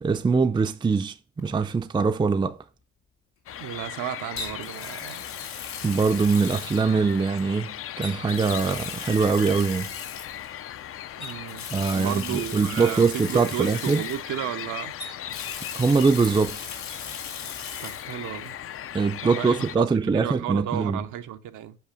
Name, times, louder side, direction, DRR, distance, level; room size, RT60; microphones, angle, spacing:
voice 1, 0.0-2.6 5.8-9.9 11.7-14.0 15.7-16.6 18.9-21.0, right 4 dB, 15° right, 0.4 m, -23 dB
Water tap faucet, 1.4-1.6 4.4-7.4 8.0-10.5 11.2-14.6 15.0-18.1 18.4-18.5 20.1-20.2, left 6 dB, 65° left, 2.2 m, -38 dB
Dawn at Loch Ness, 3.5-19.8, left 11 dB, 45° left, 0.4 m, -38 dB
voice 2, 3.6-5.2 11.2-11.7 11.9-15.0 17.8-18.6 19.2-21.8, right 11 dB, 85° right, 0.7 m, -33 dB
5.6 x 4.8 x 5.1 m
cardioid pair, 90°, 30 cm